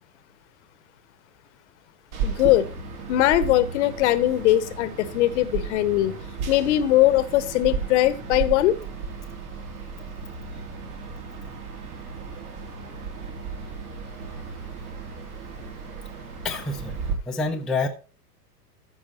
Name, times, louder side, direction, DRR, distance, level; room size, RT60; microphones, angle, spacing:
sound 1, 2.1-17.1, right 5 dB, 65° right, 3.1 m, -34 dB
voice 1, 2.2-2.7 3.1-6.1 6.5-8.7, left 14 dB, 45° left, 1.0 m, -20 dB
voice 2, 16.4-17.0 17.3-17.9, left 3 dB, ahead, 0.6 m, -27 dB
14.0 x 4.8 x 4.1 m
figure-of-eight pair, 100°, 49 cm